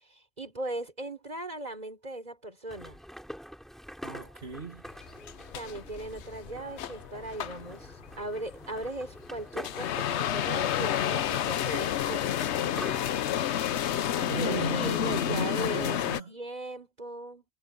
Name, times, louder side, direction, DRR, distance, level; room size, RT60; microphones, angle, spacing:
voice 1, 0.1-3.0 5.5-12.4 14.3-16.0 16.3-17.4, right 1 dB, 40° right, 3.8 m, -38 dB
sound 1, 2.7-13.4, equal, ahead, 5.8 m, -45 dB
voice 2, 4.0-4.8 14.2-16.3, right 5 dB, 70° right, 2.8 m, -37 dB
sound 2, 4.9-16.2, left 10 dB, 90° left, 1.0 m, -30 dB
omnidirectional pair, 1.1 m